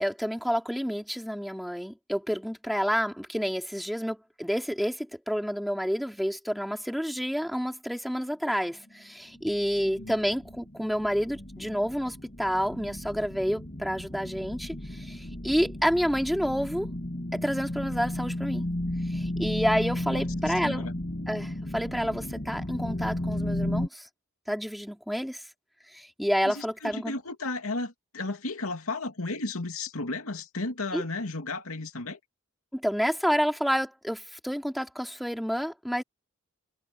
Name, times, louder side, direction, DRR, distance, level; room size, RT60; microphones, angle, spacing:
voice 1, 0.0-16.9 17.3-18.6 19.1-20.9 21.3-24.1 24.5-25.4 25.9-27.1 30.9-31.0 32.7-36.0, equal, ahead, 3.2 m, -29 dB
sound 1, 9.3-23.9, left 1 dB, 40° left, 2.6 m, -34 dB
voice 2, 20.1-20.9 26.4-32.2, left 2 dB, 85° left, 2.6 m, -34 dB
head